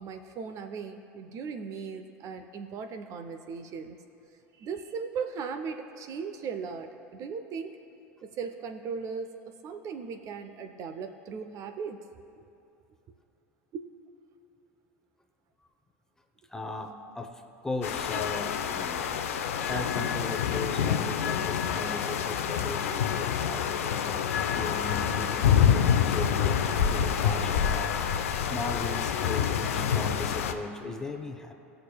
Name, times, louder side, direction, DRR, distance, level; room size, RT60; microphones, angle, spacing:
voice 1, 0.0-4.0 4.6-7.8 8.2-12.0 12.4-12.5 13.7-13.9, right 5 dB, 45° right, 7 dB, 0.5 m, -38 dB
voice 2, 16.5-28.1 28.4-31.5, left 2 dB, 5° left, 4 dB, 0.8 m, -38 dB
sound 1, 17.8-30.5, left 8 dB, 80° left, 0.5 m, -27 dB
16.5 x 6.5 x 2.3 m, 2.8 s
hypercardioid pair, 90°, 7 cm